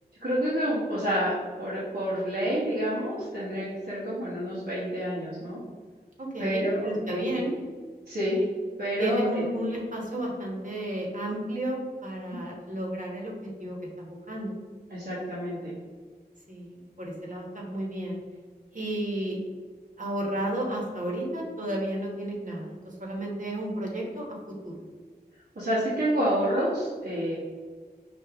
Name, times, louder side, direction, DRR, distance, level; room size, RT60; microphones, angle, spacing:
voice 1, 0.2-1.3 1.6-5.6 6.4-7.4 8.1-8.4 8.8-9.8 12.3-12.5 14.9-15.7 25.5-27.4, equal, 70° right, -9 dB, 1.2 m, -28 dB
voice 2, 6.2-7.6 9.0-14.5 16.5-18.2 18.7-19.4 20.0-24.4 24.6-24.7, right 1 dB, 50° right, -2 dB, 1.3 m, -32 dB
5.2 x 2.7 x 3.5 m, 1.6 s
wide cardioid pair, 40°, 17 cm